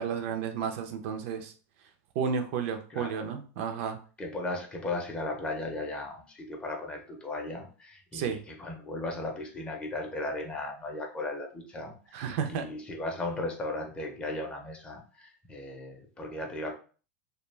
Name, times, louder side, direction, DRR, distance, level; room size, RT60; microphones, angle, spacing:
voice 1, 0.0-1.5 2.2-4.0 8.1-8.4 12.1-12.6, right 7 dB, 55° right, 7 dB, 0.4 m, -32 dB
voice 2, 2.9-3.2 4.2-16.7, left 2 dB, 15° left, 1 dB, 0.5 m, -36 dB
2.2 x 2.1 x 3.1 m, 0.38 s
supercardioid pair, 150°, 8 cm